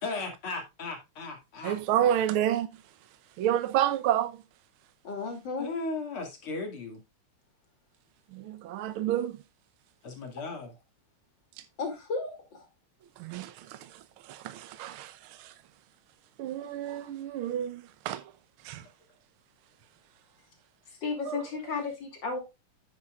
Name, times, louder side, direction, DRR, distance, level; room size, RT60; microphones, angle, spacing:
voice 1, 0.0-2.2 5.6-7.0 10.0-10.7 16.8-17.0, left 3 dB, 70° left, 3.2 m, -37 dB
voice 2, 1.6-2.7 3.4-4.4 8.3-9.4 13.2-15.5 16.4-18.2 18.6-18.9 21.3-21.4, right 11 dB, 75° right, 1.6 m, -30 dB
voice 3, 5.0-5.7 11.8-12.7 16.6-16.7 20.9-22.4, left 4 dB, 55° left, 3.3 m, -34 dB
9.8 x 9.0 x 2.4 m
omnidirectional pair, 2.4 m